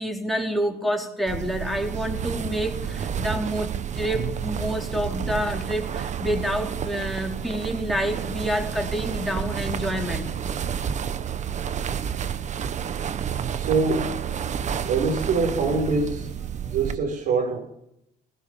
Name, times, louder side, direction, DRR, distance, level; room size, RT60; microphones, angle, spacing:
voice 1, 0.0-10.3 13.0-13.2, equal, ahead, 1 dB, 4.5 m, -28 dB
sound 1, 1.3-17.0, right 8 dB, 45° right, 1.3 m, -30 dB
voice 2, 13.6-14.1 14.8-16.3 16.6-17.6, right 4 dB, 75° right, -3 dB, 6.6 m, -24 dB
21.0 x 19.5 x 7.6 m, 0.81 s
cardioid pair, 110°, 17 cm